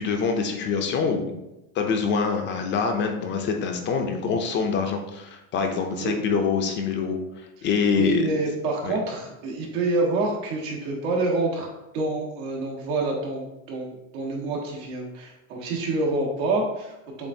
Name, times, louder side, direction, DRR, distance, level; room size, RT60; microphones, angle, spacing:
voice 1, 0.0-1.3 1.7-8.3 8.8-9.0, left 5 dB, 30° left, 4 dB, 0.4 m, -25 dB
voice 2, 8.0-11.7 11.9-17.3, right 2 dB, 85° right, -2 dB, 1.4 m, -27 dB
6.9 x 2.4 x 2.6 m, 0.92 s
cardioid pair, 155°, 37 cm